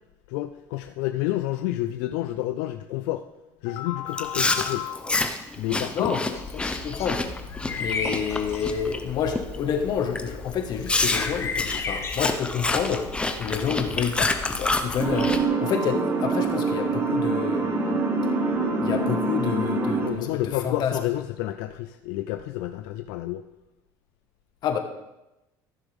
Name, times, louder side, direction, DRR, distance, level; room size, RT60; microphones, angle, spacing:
voice 1, 0.3-3.2 3.6-5.3 5.6-6.2 20.0-23.4, left 14 dB, 85° left, 8 dB, 0.5 m, -29 dB
Chewing mastication, 4.1-9.0 9.4-9.7 10.2-10.3 10.9-15.4, left 2 dB, 10° left, 0.8 m, -28 dB
sound 1, 6.3-15.4, left 4 dB, 30° left, 1.6 m, -36 dB
voice 2, 6.5-7.2 7.8-13.0 13.4-18.0 18.8-21.0 24.6-24.8, left 7 dB, 55° left, 5 dB, 1.6 m, -29 dB
sound 2, 15.0-20.1, right 3 dB, 25° right, 1.5 m, -25 dB
15.0 x 6.9 x 3.6 m, 0.96 s
cardioid pair, 115°, 9 cm